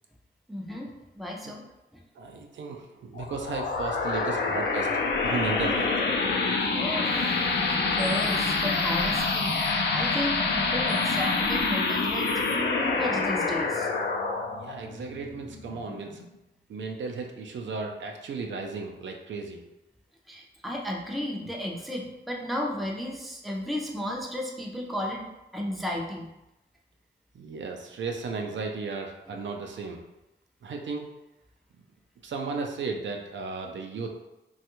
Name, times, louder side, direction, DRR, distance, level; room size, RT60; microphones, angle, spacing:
voice 1, 0.5-1.6 6.7-7.4 7.9-12.3 12.5-13.9 20.3-25.2 25.5-26.3, left 1 dB, ahead, -1 dB, 0.4 m, -33 dB
voice 2, 2.2-4.9 5.2-5.9 14.6-16.2 16.7-19.6 27.3-30.0 30.6-31.1 32.2-34.1, right 4 dB, 75° right, 2 dB, 0.5 m, -35 dB
sound 1, 3.1-16.3, left 3 dB, 65° left, 0.4 m, -27 dB
3.2 x 2.3 x 2.9 m, 0.93 s
wide cardioid pair, 130°, 19 cm